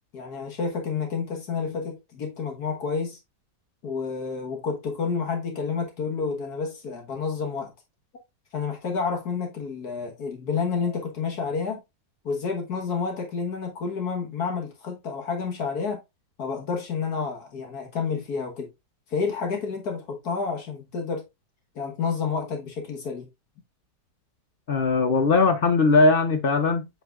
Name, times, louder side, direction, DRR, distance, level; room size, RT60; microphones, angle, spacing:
voice 1, 0.1-3.2 3.8-7.7 8.5-11.8 12.3-16.0 16.4-18.7 19.1-21.2 21.8-23.3, left 5 dB, 75° left, 1.9 m, -29 dB
voice 2, 24.7-26.9, left 3 dB, 50° left, 0.7 m, -20 dB
7.7 x 5.1 x 2.4 m
omnidirectional pair, 1.7 m